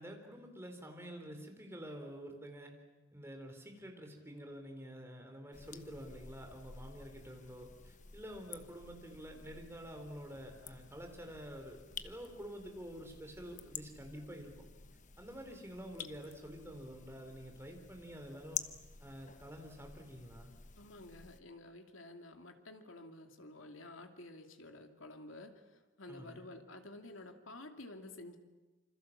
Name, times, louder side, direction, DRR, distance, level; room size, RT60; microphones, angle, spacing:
voice 1, 0.0-2.7 3.1-14.7 15.2-18.7 19.0-20.5 26.1-26.5, equal, 10° right, 3 dB, 4.0 m, -48 dB
sound 1, 5.5-21.4, left 7 dB, 40° left, 1.2 m, -50 dB
voice 2, 20.8-25.5 26.0-28.4, left 2 dB, 75° left, 5 dB, 2.6 m, -51 dB
27.5 x 26.0 x 7.4 m, 1.2 s
head